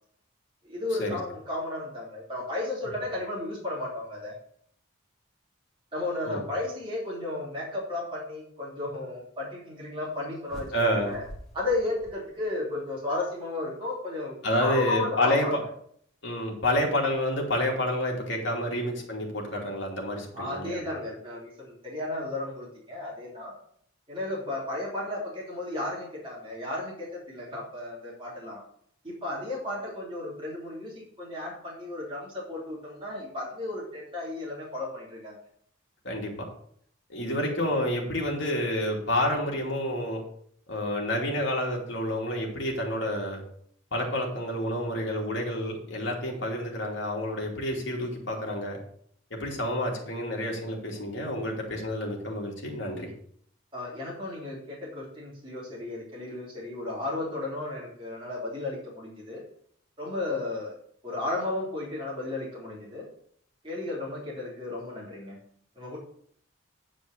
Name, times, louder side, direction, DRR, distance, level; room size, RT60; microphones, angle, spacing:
voice 1, 0.6-4.3 5.9-11.2 11.5-15.5 20.3-23.5 24.1-28.6 29.0-35.4 37.2-37.7 53.7-59.4 60.0-60.7 61.0-63.1 63.6-65.4 65.7-66.0, left 2 dB, 25° right, -5 dB, 3.2 m, -34 dB
sound 1, 10.5-12.8, equal, ahead, 2.7 m, -47 dB
voice 2, 10.7-11.1 14.4-15.5 16.2-20.8 36.0-36.5 37.1-40.2 40.7-43.4 43.9-48.8 49.3-53.1, left 1 dB, 60° left, -1 dB, 2.7 m, -29 dB
9.5 x 5.1 x 6.7 m, 0.64 s
head